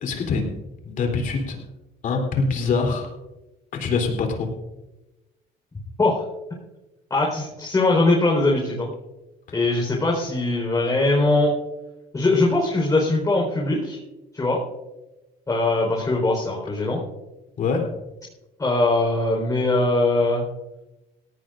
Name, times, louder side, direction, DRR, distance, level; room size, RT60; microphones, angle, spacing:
voice 1, 0.0-0.5 0.8-1.6 2.0-3.1 3.7-4.5 17.6-17.8, left 4 dB, 55° left, 3 dB, 3.5 m, -24 dB
voice 2, 7.1-8.9 9.5-11.5 12.1-14.0 14.3-14.6 15.5-17.0 18.6-20.4, left 2 dB, 20° left, -3 dB, 4.5 m, -21 dB
18.0 x 17.5 x 2.6 m, 1.0 s
cardioid pair, 120°, 16 cm